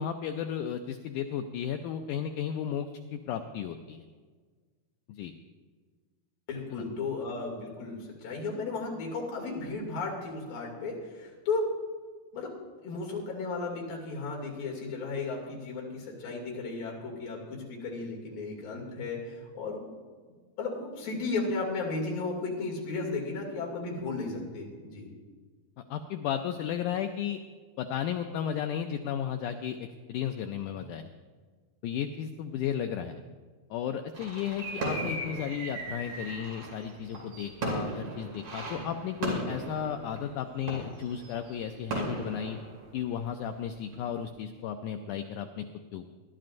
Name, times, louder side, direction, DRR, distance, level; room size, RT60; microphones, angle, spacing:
voice 1, 0.0-4.0 5.1-5.3 6.7-6.8 25.8-27.4 27.8-31.1 31.8-33.2 33.7-42.6 42.9-45.7 45.9-46.1, left 9 dB, 90° left, 6 dB, 1.7 m, -34 dB
voice 2, 6.5-11.7 12.3-12.5 12.8-19.9 20.6-25.1, left 3 dB, 75° left, -2 dB, 4.2 m, -34 dB
sound 1, 34.1-43.5 43.9-44.2, right 2 dB, 65° right, 4.3 m, -37 dB
21.0 x 12.0 x 2.6 m, 1.5 s
omnidirectional pair, 4.1 m